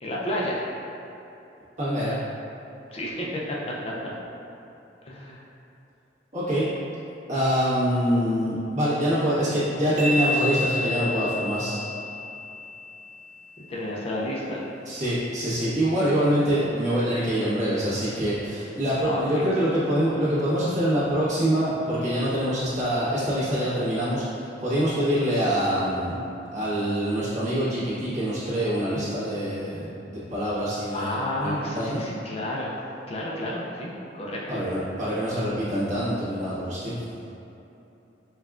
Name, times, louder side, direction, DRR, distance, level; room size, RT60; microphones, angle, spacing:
voice 1, 0.0-0.6 2.9-3.6 3.8-4.1 5.1-5.4 13.6-14.7 19.0-19.5 30.9-34.6, left 1 dB, 35° left, -4 dB, 0.4 m, -31 dB
voice 2, 1.8-2.2 6.3-6.7 7.3-11.8 14.9-26.2 26.5-32.0 34.5-37.0, equal, 40° right, -12 dB, 1.3 m, -25 dB
sound 1, 10.0-13.5, left 1 dB, 60° right, 0.7 m, -30 dB
5.4 x 2.3 x 2.4 m, 2.9 s
head